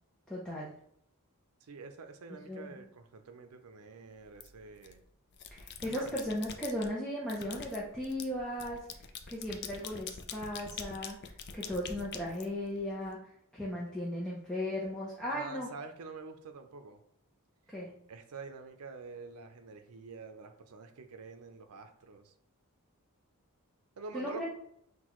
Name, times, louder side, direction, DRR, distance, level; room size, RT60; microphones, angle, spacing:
voice 1, 0.3-0.7 2.5-2.8 5.5-8.9 9.3-13.2 13.5-15.7 17.7-17.9 24.1-24.4, left 1 dB, 5° left, -6 dB, 0.6 m, -36 dB
voice 2, 1.6-5.0 5.8-6.1 15.3-17.0 18.1-22.3 24.0-24.4, right 4 dB, 85° right, 7 dB, 0.6 m, -47 dB
sound 1, 4.4-4.9 5.3-6.9 7.3-13.1, left 6 dB, 50° left, 0.4 m, -45 dB
5.9 x 2.3 x 3.0 m, 0.72 s
head